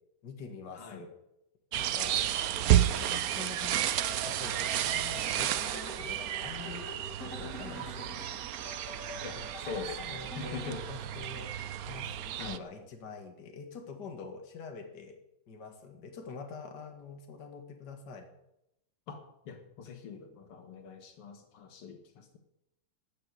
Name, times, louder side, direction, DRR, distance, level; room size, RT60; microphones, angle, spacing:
voice 1, 0.2-1.1 1.7-6.9 7.2-8.3 9.4-11.5 11.9-15.2 15.5-18.3, left 5 dB, 50° left, 4 dB, 2.3 m, -46 dB
voice 2, 0.7-1.1 2.1-2.3 2.6-3.1 9.2-10.8 12.4-12.6 19.1-22.4, left 5 dB, 90° left, 6 dB, 2.4 m, -43 dB
sound 1, 1.7-12.6, right 11 dB, 85° right, 0.8 m, -32 dB
sound 2, 3.8-10.9, left 1 dB, 35° left, 4.5 m, -46 dB
13.5 x 7.0 x 9.5 m, 0.84 s
omnidirectional pair, 2.3 m